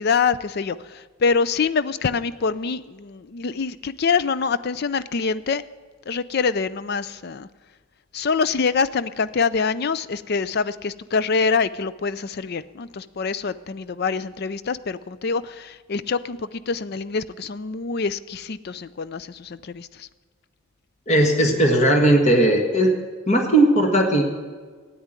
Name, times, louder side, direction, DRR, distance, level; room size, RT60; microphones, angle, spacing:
voice 1, 0.0-5.6 6.1-7.5 8.1-20.1, left 5 dB, 50° left, 16 dB, 0.4 m, -25 dB
voice 2, 21.1-22.9 23.3-24.2, right 1 dB, 30° left, 3 dB, 1.6 m, -17 dB
13.5 x 9.4 x 8.9 m, 1.5 s
head